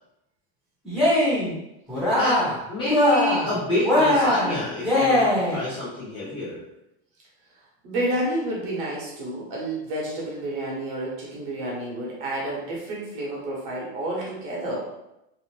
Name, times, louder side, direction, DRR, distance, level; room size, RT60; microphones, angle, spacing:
Cheering, 0.8-1.5 1.9-2.6 2.8-3.5 3.8-5.6, left 1 dB, ahead, 0.7 m, -21 dB
voice 1, 2.1-6.6, left 1 dB, 20° left, -9 dB, 0.4 m, -28 dB
voice 2, 7.8-14.8, right 1 dB, 45° right, -4 dB, 0.9 m, -30 dB
2.7 x 2.0 x 3.1 m, 0.86 s
supercardioid pair, 170°, 30 cm